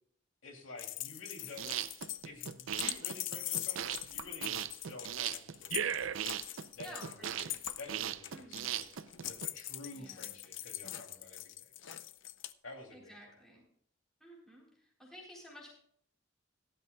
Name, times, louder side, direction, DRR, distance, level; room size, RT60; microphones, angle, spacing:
voice 1, 0.4-1.8 2.2-6.2 6.8-8.9 9.2-12.1 12.6-13.2, left 2 dB, 90° left, 2 dB, 2.8 m, -50 dB
sound 1, 0.8-12.5, left 14 dB, 65° left, 0.6 m, -42 dB
sound 2, 1.4-9.5, right 9 dB, 85° right, 0.5 m, -38 dB
voice 2, 6.8-7.6 8.3-8.7 9.9-10.3 12.9-13.6 14.2-15.7, equal, ahead, -4 dB, 4.0 m, -52 dB
18.0 x 12.0 x 2.3 m, 0.62 s
head